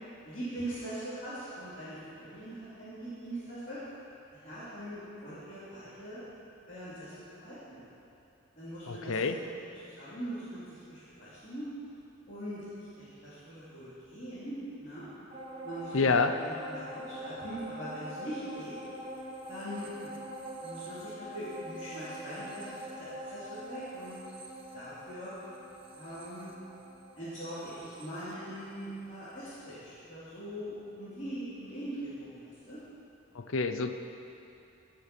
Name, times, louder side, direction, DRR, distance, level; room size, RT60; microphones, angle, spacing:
voice 1, 0.2-3.8 4.3-6.2 6.7-7.8 8.6-11.7 12.3-14.5 14.8-15.1 15.6-18.7 19.5-20.1 20.6-22.7 23.0-24.2 24.7-25.3 25.9-26.5 27.2-32.8, right 1 dB, 35° left, -14 dB, 3.0 m, -42 dB
voice 2, 8.9-9.4 15.9-16.3 33.3-33.9, left 4 dB, 75° left, 8 dB, 0.7 m, -27 dB
sound 1, 15.3-29.0 29.4-29.5, right 1 dB, 25° right, 0.9 m, -44 dB
17.0 x 5.9 x 6.1 m, 2.8 s
head